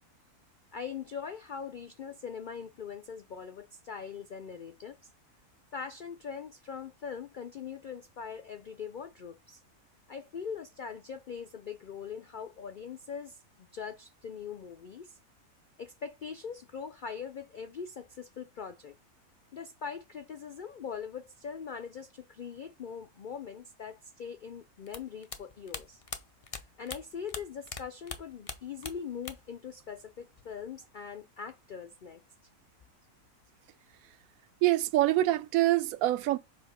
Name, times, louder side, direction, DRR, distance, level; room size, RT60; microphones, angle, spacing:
voice 1, 0.7-5.0 5.7-9.6 10.1-15.2 15.8-18.9 19.5-26.0 26.8-32.2, left 6 dB, 85° left, 0.4 m, -41 dB
sound 1, 24.9-27.8 28.1-29.6 29.8-30.6, left 4 dB, 35° left, 0.5 m, -41 dB
voice 2, 34.6-36.4, right 15 dB, 70° right, 1.0 m, -25 dB
7.8 x 2.8 x 5.3 m
omnidirectional pair, 1.6 m